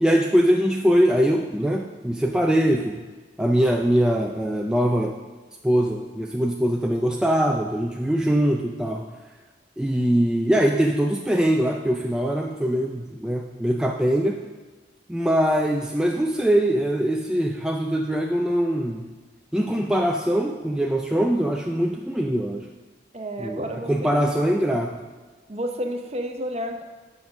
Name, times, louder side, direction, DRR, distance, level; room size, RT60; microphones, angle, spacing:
voice 1, 0.0-3.0 3.4-5.2 5.6-9.1 9.8-14.4 15.1-19.1 19.5-22.7 23.4-25.0, equal, 5° right, 0 dB, 0.3 m, -22 dB
voice 2, 23.1-24.3 25.5-26.9, equal, 35° right, 5 dB, 0.7 m, -31 dB
7.5 x 5.3 x 5.9 m, 1.3 s
head